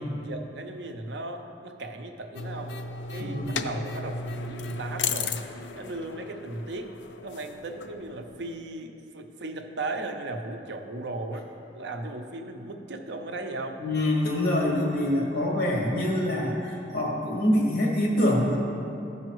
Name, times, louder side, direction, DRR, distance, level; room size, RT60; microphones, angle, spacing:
voice 1, 0.0-2.7 3.1-6.9 7.2-13.8, right 2 dB, 70° right, 5 dB, 0.6 m, -37 dB
sound 1, 2.4-8.5, left 4 dB, 80° left, 0.4 m, -35 dB
voice 2, 3.2-3.7 13.8-18.6, left 1 dB, 60° left, -3 dB, 1.6 m, -25 dB
13.5 x 5.5 x 3.1 m, 2.8 s
head